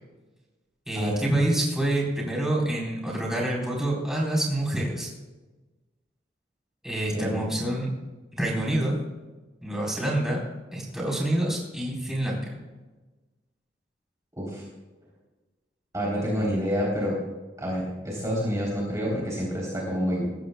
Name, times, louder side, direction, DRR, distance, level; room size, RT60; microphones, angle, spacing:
voice 1, 0.9-5.1 6.8-7.9 8.3-8.9 9.6-10.4 10.7-12.5, right 1 dB, 5° right, -4 dB, 4.2 m, -27 dB
voice 2, 7.1-7.6 14.4-14.6 15.9-17.2 17.6-20.3, equal, 20° right, -4 dB, 3.5 m, -28 dB
20.0 x 15.0 x 2.3 m, 1.2 s
head